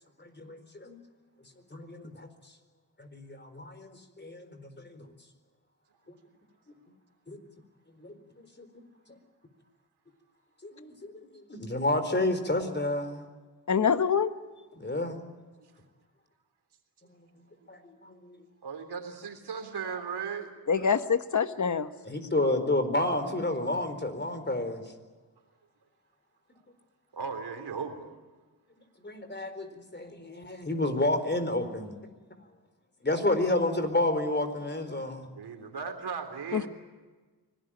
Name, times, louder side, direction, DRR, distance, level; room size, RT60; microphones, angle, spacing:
voice 1, 0.2-1.0 1.7-2.3 3.0-5.1 7.3-7.4 8.0-8.7 9.1-9.2 10.6-13.3 14.8-15.2 17.1-17.3 17.7-18.4 22.0-24.9 29.0-32.0 33.0-35.3, left 2 dB, 25° left, 9 dB, 4.3 m, -30 dB
voice 2, 13.7-14.3 20.7-21.9 36.5-36.7, left 6 dB, 50° left, 11 dB, 1.4 m, -25 dB
voice 3, 18.6-20.5 27.1-28.1 35.3-36.7, right 6 dB, 80° right, 5 dB, 3.5 m, -37 dB
25.0 x 18.0 x 8.8 m, 1.3 s
cardioid pair, 70°, 39 cm